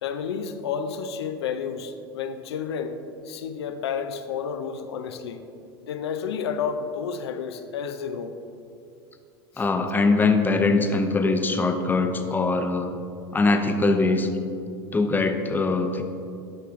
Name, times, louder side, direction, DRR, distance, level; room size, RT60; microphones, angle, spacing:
voice 1, 0.0-5.4 5.8-8.4 9.5-9.6, left 6 dB, 85° left, 8 dB, 0.6 m, -31 dB
voice 2, 9.6-13.0 13.3-14.3 14.9-16.0, left 3 dB, 15° left, 6 dB, 0.7 m, -22 dB
11.0 x 5.6 x 3.7 m, 2.6 s
hypercardioid pair, 100°, 13 cm